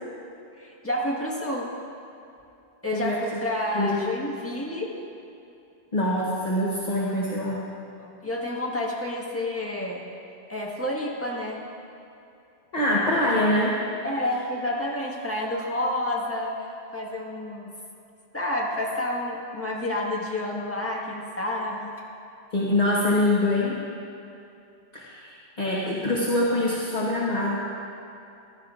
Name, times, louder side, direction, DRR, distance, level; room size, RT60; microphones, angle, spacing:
voice 1, 0.6-1.7 2.8-4.9 8.0-10.0 10.5-11.6 13.3-13.4 14.0-16.6 16.9-17.7 18.3-21.9, left 1 dB, 10° left, -4 dB, 1.5 m, -29 dB
voice 2, 2.9-3.2 3.7-4.0 5.9-7.6 12.7-13.8 22.5-23.8 24.9-27.6, left 1 dB, 40° left, -6 dB, 1.2 m, -24 dB
15.5 x 12.5 x 2.5 m, 2.7 s
omnidirectional pair, 1.1 m